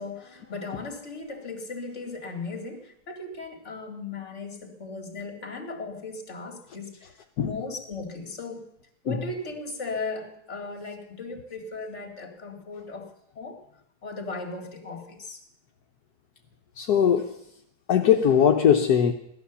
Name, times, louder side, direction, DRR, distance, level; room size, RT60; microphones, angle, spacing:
voice 1, 0.0-7.0 7.4-8.7 9.0-13.1 13.4-13.6 14.0-15.4, left 3 dB, 40° left, 2.4 m, -37 dB
voice 2, 16.8-17.4 17.9-19.1, left 8 dB, 70° left, 1.3 m, -20 dB
17.5 x 12.0 x 6.9 m
omnidirectional pair, 1.8 m